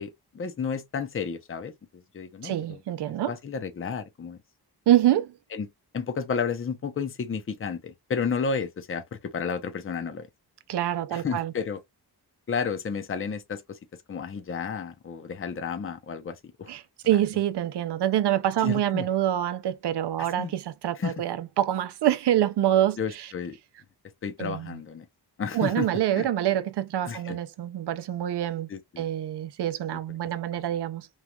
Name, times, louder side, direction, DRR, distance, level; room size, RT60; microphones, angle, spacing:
voice 1, 0.0-2.8 3.3-4.4 5.5-5.7 5.9-10.3 11.1-11.8 12.5-13.8 14.1-16.7 17.0-17.2 18.6-19.1 20.4-20.5 21.0-21.2 23.0-23.6 24.2-25.1 25.4-26.3 27.0-27.4 28.7-29.1 30.5-30.6, left 6 dB, 30° left, 0.6 m, -32 dB
voice 2, 2.4-3.3 4.9-5.4 10.7-11.5 16.7-23.3 24.4-24.8 25.5-28.7 29.0-31.1, right 12 dB, 80° right, 0.5 m, -26 dB
3.0 x 2.3 x 2.3 m
wide cardioid pair, 105°, 40 cm